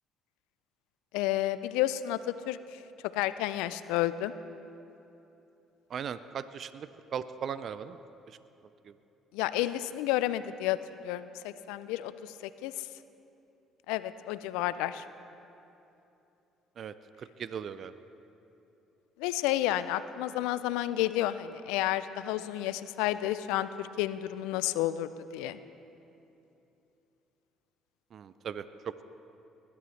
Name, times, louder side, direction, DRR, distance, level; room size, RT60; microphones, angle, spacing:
voice 1, 1.1-2.8 3.1-4.3 9.3-10.8 11.0-12.3 12.6-12.9 13.9-15.0 19.2-25.6, left 14 dB, 80° left, 14 dB, 0.4 m, -31 dB
voice 2, 5.9-8.0 8.3-8.4 8.8-8.9 16.8-17.9 28.1-29.0, right 7 dB, 55° right, 14 dB, 0.4 m, -38 dB
20.0 x 11.5 x 3.3 m, 2.9 s
hypercardioid pair, 55°, 0 cm